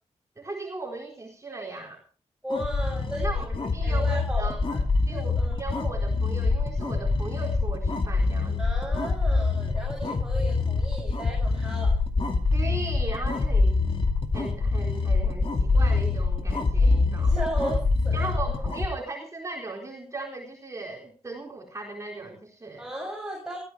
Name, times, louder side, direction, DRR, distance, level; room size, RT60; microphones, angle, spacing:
voice 1, 0.4-2.0 3.2-4.6 5.1-8.6 12.5-13.8 14.3-17.4 18.1-22.9, right 3 dB, 25° right, -1 dB, 4.0 m, -37 dB
voice 2, 2.4-4.8 5.1-5.6 8.6-12.0 17.2-18.2 22.8-23.6, right 1 dB, 5° right, -4 dB, 7.3 m, -35 dB
sound 1, 2.5-18.9, left 3 dB, 50° left, 2.3 m, -25 dB
22.5 x 15.5 x 3.5 m, 0.38 s
wide cardioid pair, 150°, 12 cm